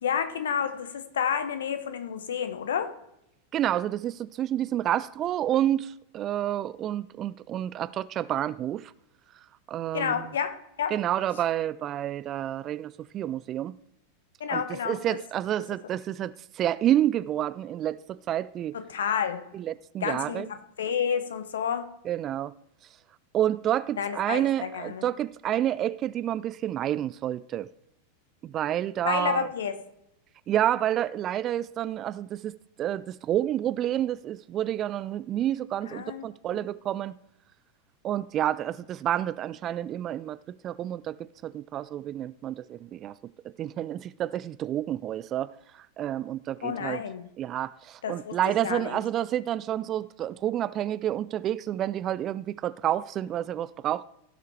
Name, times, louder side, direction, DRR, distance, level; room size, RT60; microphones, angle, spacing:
voice 1, 0.0-2.9 9.9-10.9 14.4-15.0 18.7-19.4 20.0-21.9 24.0-25.0 29.0-29.8 35.9-36.2 46.6-47.3 48.0-48.3 48.6-49.0, left 7 dB, 65° left, 1.2 m, -30 dB
voice 2, 3.5-8.9 9.7-10.2 10.9-13.7 14.5-18.8 19.5-20.5 22.1-22.5 23.3-27.7 28.4-29.5 30.5-37.1 38.0-40.4 40.6-41.2 41.4-43.1 43.6-45.5 46.0-47.0 47.4-54.0, right 11 dB, 30° right, 0.3 m, -29 dB
16.5 x 5.8 x 4.6 m
figure-of-eight pair, 90°, 0 cm